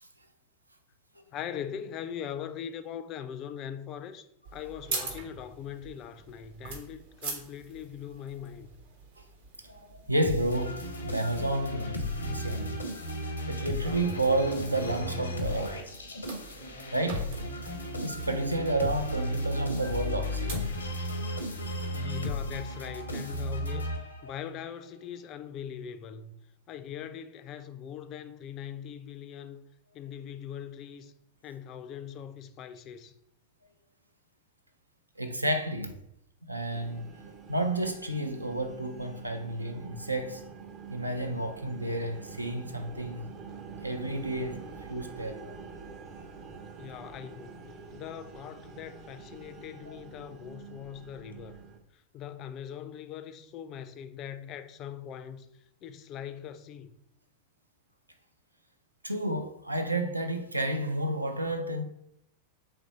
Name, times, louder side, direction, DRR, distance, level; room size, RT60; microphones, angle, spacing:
voice 1, 1.3-4.3 4.5-8.8 21.9-26.3 26.7-29.7 29.9-31.1 31.4-33.2 46.8-51.6 51.9-56.9, left 9 dB, 35° left, 0.3 m, -41 dB
sound 1, 4.4-21.8, right 3 dB, 60° right, 0.9 m, -45 dB
voice 2, 9.6-12.7 13.5-15.8 16.9-17.3 18.0-20.7 35.2-35.9 36.5-37.1 37.5-40.4 40.9-43.3 43.8-44.6 44.9-45.6 49.9-50.0 59.0-61.8, right 1 dB, 85° right, 0.4 m, -31 dB
sound 2, 10.2-24.5, left 1 dB, 80° left, 0.6 m, -34 dB
sound 3, 36.7-51.8, right 5 dB, 35° right, 0.5 m, -46 dB
3.2 x 2.6 x 4.0 m
figure-of-eight pair, 90°, 0 cm